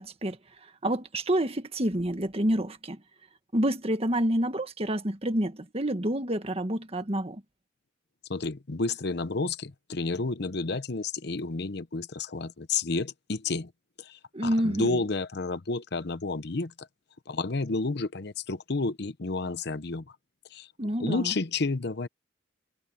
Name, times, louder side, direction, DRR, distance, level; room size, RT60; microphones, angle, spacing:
voice 1, 0.0-3.0 3.5-7.4 14.3-15.0 20.8-21.3, right 1 dB, 35° right, 1.7 m, -28 dB
voice 2, 8.3-13.7 14.0-16.9 17.3-20.0 20.5-20.7 21.0-22.1, left 3 dB, 60° left, 0.9 m, -31 dB
head